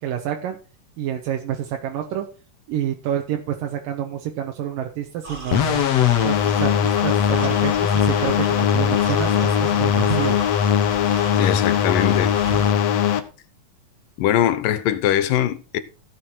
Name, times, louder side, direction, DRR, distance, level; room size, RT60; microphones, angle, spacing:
voice 1, 0.0-0.6 1.0-2.3 2.7-5.8 6.2-10.4, right 10 dB, 85° right, 2.9 m, -28 dB
sound 1, 5.2-12.7, right 3 dB, 50° right, 0.6 m, -34 dB
sound 2, 5.5-13.2, left 9 dB, 60° left, 2.0 m, -20 dB
voice 2, 11.4-12.4 14.2-15.8, left 11 dB, 85° left, 2.7 m, -21 dB
16.0 x 6.9 x 4.6 m
omnidirectional pair, 3.8 m